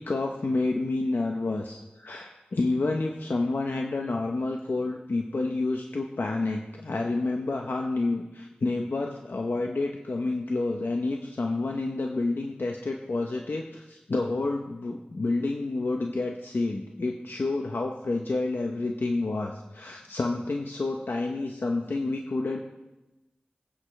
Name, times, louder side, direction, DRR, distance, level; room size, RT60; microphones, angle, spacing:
voice 1, 0.0-22.6, left 2 dB, 85° left, 2 dB, 0.9 m, -29 dB
23.0 x 8.7 x 3.3 m, 1.0 s
wide cardioid pair, 55°, 3 cm